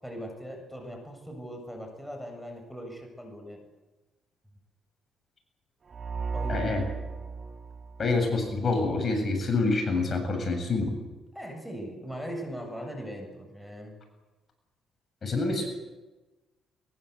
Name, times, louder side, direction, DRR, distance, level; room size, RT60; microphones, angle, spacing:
voice 1, 0.0-3.6 6.3-6.9 11.3-13.9, equal, ahead, 2 dB, 7.4 m, -40 dB
sound 1, 5.9-8.7, right 4 dB, 45° right, 3.2 m, -35 dB
voice 2, 6.5-6.8 8.0-11.0 15.2-15.7, left 3 dB, 40° left, 4 dB, 7.6 m, -27 dB
23.5 x 22.5 x 8.2 m, 1.1 s
cardioid pair, 90°, 0 cm